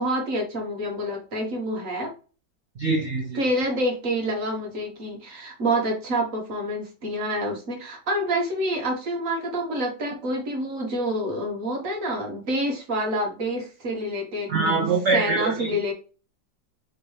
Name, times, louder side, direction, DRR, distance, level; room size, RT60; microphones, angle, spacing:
voice 1, 0.0-2.1 3.4-14.9 15.1-15.9, right 1 dB, 50° right, 1.6 m, -27 dB
voice 2, 2.8-3.4 14.5-15.7, right 3 dB, 75° right, 0.6 m, -24 dB
5.2 x 3.0 x 3.2 m
omnidirectional pair, 1.9 m